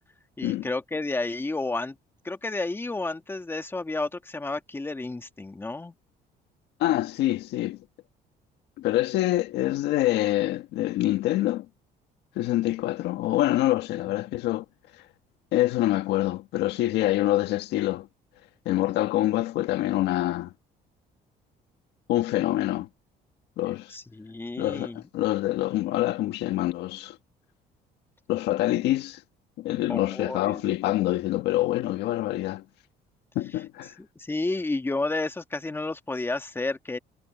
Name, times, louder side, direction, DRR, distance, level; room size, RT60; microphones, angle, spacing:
voice 1, 0.4-1.9 2.2-5.9 23.9-25.0 29.9-30.6 34.1-37.0, left 2 dB, 15° left, 1.7 m, -31 dB
voice 2, 6.8-7.8 8.8-11.7 12.3-14.6 15.5-18.1 18.6-20.5 22.1-22.9 23.6-23.9 24.6-27.2 28.3-29.2 29.6-32.6 33.3-33.9, left 15 dB, 85° left, 1.7 m, -26 dB
cardioid pair, 110°, 17 cm